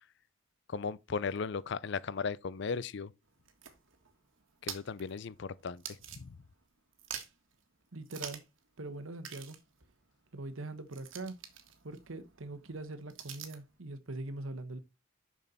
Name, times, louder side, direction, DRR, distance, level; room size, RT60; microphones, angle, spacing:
voice 1, 0.7-3.1 4.6-6.4, left 5 dB, 60° left, 0.5 m, -37 dB
sound 1, 3.2-6.7 6.9-7.5 8.1-8.6 8.9-9.0 9.2-13.7, right 9 dB, 75° right, 1.5 m, -47 dB
voice 2, 7.9-8.4 8.8-9.6 10.3-11.4 11.8-14.8, right 2 dB, 90° right, 1.2 m, -42 dB
6.8 x 6.4 x 4.1 m
head